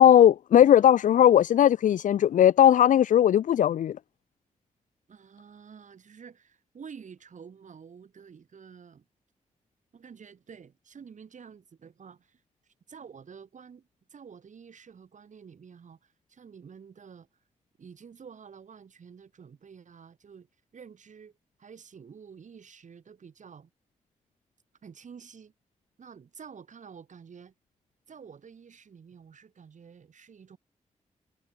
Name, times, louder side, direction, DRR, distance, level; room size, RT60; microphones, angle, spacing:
voice 1, 0.0-4.0, left 10 dB, 75° left, 0.4 m, -18 dB
voice 2, 5.1-9.1 9.9-17.3 17.8-20.5 20.7-21.3 21.6-23.7 24.8-25.5 26.0-27.5 28.1-30.6, right 6 dB, 70° right, 7.8 m, -49 dB
cardioid pair, 60°, 13 cm